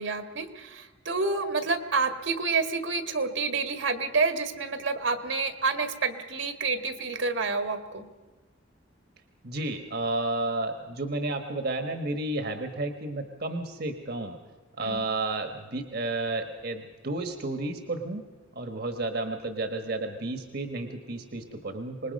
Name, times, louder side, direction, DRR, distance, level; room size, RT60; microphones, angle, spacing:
voice 1, 0.0-8.1 14.8-15.0, right 4 dB, 70° right, 7 dB, 1.7 m, -28 dB
voice 2, 9.4-14.4 14.8-18.2 18.5-22.1, right 2 dB, 55° right, 6 dB, 1.3 m, -32 dB
26.0 x 20.5 x 5.3 m, 1.3 s
head